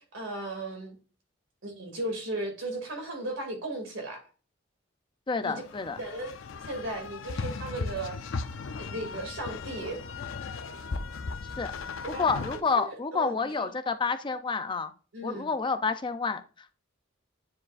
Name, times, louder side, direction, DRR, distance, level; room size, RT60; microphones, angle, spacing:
voice 1, 0.1-0.9 1.6-4.2 5.4-5.6 6.0-6.3 6.6-8.2 8.8-10.0 12.0-12.3 12.7-13.7 15.1-15.5, right 1 dB, 75° right, 2.5 m, -36 dB
voice 2, 5.3-6.0 11.6-14.9 15.2-16.4, left 4 dB, 25° left, 0.5 m, -29 dB
sound 1, 5.6-12.6, left 4 dB, 85° left, 0.6 m, -37 dB
9.6 x 4.5 x 2.5 m
head